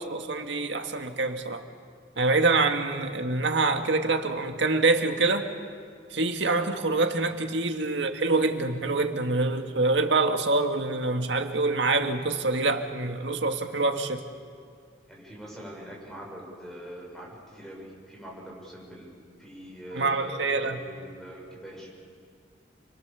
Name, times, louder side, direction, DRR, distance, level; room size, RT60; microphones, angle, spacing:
voice 1, 0.0-1.6 2.2-5.5 6.1-14.2 19.9-20.8, right 3 dB, 80° right, 5 dB, 1.8 m, -25 dB
voice 2, 15.1-21.9, equal, ahead, -3 dB, 6.7 m, -43 dB
29.0 x 23.5 x 7.0 m, 2.1 s
head